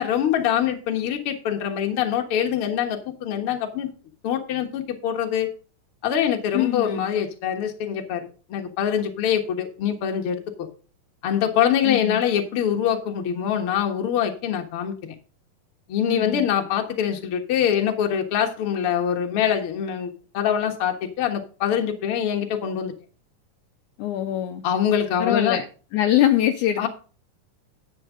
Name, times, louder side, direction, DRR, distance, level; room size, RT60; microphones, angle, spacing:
voice 1, 0.0-3.9 4.2-5.5 6.0-10.7 11.2-15.2 15.9-22.9 24.6-25.6 26.8-26.9, left 9 dB, 55° left, 4 dB, 1.7 m, -24 dB
voice 2, 6.5-7.1 11.8-12.2 16.1-16.5 24.0-24.6 25.2-25.7 25.9-26.9, left 12 dB, 80° left, 6 dB, 1.8 m, -23 dB
11.0 x 8.2 x 3.7 m, 0.37 s
omnidirectional pair, 4.1 m